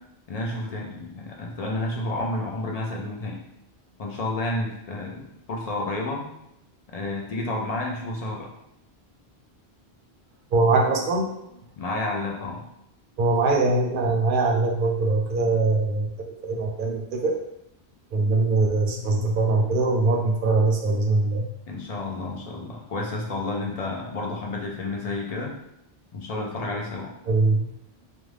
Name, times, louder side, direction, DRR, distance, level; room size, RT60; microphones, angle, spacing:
voice 1, 0.3-3.4 4.0-6.3 6.9-8.5 11.8-12.7 21.7-25.6 26.1-27.1, left 2 dB, 55° left, -1 dB, 0.4 m, -30 dB
voice 2, 10.5-11.3 13.2-16.1 16.4-17.3 18.1-21.5 27.3-27.7, right 3 dB, 60° right, 1 dB, 0.6 m, -22 dB
2.5 x 2.2 x 3.2 m, 0.81 s
omnidirectional pair, 1.1 m